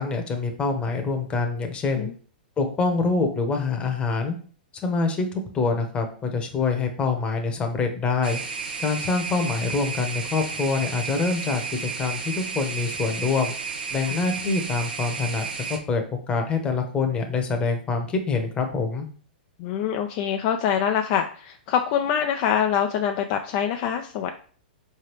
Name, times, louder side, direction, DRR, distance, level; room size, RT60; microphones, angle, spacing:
voice 1, 0.0-2.1 2.6-4.3 4.8-8.4 8.8-13.5 13.9-15.5 15.9-19.1, left 4 dB, 20° left, 4 dB, 0.9 m, -25 dB
sound 1, 8.2-15.8, right 5 dB, 75° right, 0.8 m, -32 dB
voice 2, 19.6-24.4, left 8 dB, 45° left, 4 dB, 0.4 m, -25 dB
4.5 x 3.3 x 3.0 m, 0.43 s
hypercardioid pair, 115°, 5 cm